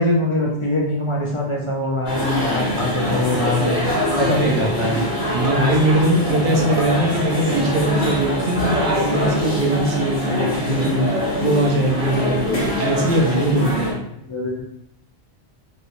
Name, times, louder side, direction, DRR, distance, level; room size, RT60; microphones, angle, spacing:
voice 1, 0.0-3.8 4.2-5.0 12.1-12.3 14.2-14.6, left 1 dB, 50° left, -2 dB, 0.3 m, -23 dB
sound 1, 2.1-13.9, left 1 dB, 85° left, 1.3 m, -23 dB
sound 2, 2.3-3.0 3.3-4.3 4.6-5.7 6.0-7.0 7.3-7.4, equal, 90° right, 1.2 m, -31 dB
voice 2, 5.3-11.1 11.4-13.9, right 1 dB, 60° right, -1 dB, 0.8 m, -21 dB
3.2 x 2.9 x 2.5 m, 0.77 s
omnidirectional pair, 1.1 m